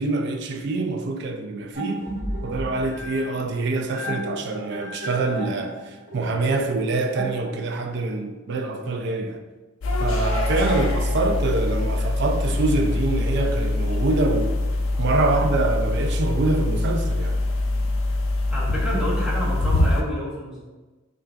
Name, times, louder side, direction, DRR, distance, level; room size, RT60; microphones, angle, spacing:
voice 1, 0.0-2.0 2.4-9.4 10.0-14.6 15.0-17.4, right 2 dB, 55° right, 0.4 m, -25 dB
sound 1, 1.7-7.9, equal, 40° right, 1.0 m, -34 dB
sound 2, 9.8-20.0, left 2 dB, 75° left, 0.4 m, -24 dB
voice 2, 18.5-20.6, equal, 5° right, 0.8 m, -29 dB
5.6 x 2.3 x 2.4 m
head